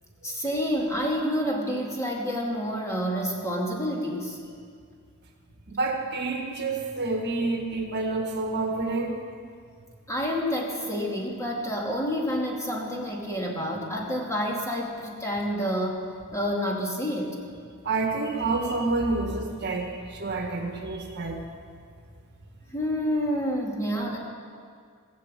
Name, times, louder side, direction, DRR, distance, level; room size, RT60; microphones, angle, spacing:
voice 1, 0.2-4.4 10.1-16.0 16.3-17.4 22.7-24.2, equal, 15° left, -2 dB, 2.3 m, -28 dB
voice 2, 5.7-9.2 17.8-21.4, right 3 dB, 50° right, 3 dB, 1.6 m, -28 dB
19.5 x 7.5 x 7.5 m, 2.2 s
head